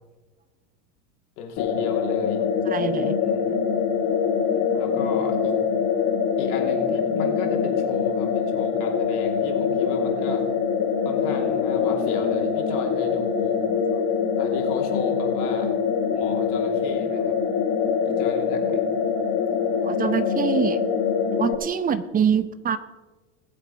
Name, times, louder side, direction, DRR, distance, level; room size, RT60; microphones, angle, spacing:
voice 1, 1.4-2.4 3.2-3.5 4.8-5.6 6.4-10.4 11.0-13.6 14.4-15.7 16.1-17.4 18.0-18.8, left 6 dB, 65° left, 1 dB, 3.1 m, -34 dB
sound 1, 1.6-21.5, left 6 dB, 40° left, 1.9 m, -24 dB
voice 2, 2.7-3.2 19.8-20.8 21.4-22.8, right 8 dB, 20° right, 14 dB, 0.6 m, -25 dB
20.0 x 7.8 x 4.3 m, 1.2 s
hypercardioid pair, 100°, 49 cm